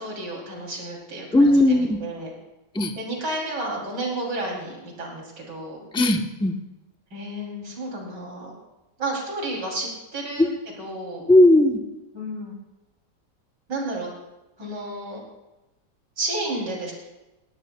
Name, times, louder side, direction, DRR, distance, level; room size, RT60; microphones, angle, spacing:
voice 1, 0.0-2.3 3.0-5.9 7.1-8.5 9.0-11.3 12.1-12.6 13.7-14.1 14.6-15.2 16.2-16.9, right 1 dB, 80° right, -2 dB, 3.7 m, -32 dB
voice 2, 1.3-2.0 2.7-2.9 5.9-6.5 10.4-10.5 11.3-11.8, left 1 dB, 5° left, 4 dB, 0.4 m, -17 dB
18.5 x 17.5 x 2.2 m, 1.0 s
omnidirectional pair, 1.9 m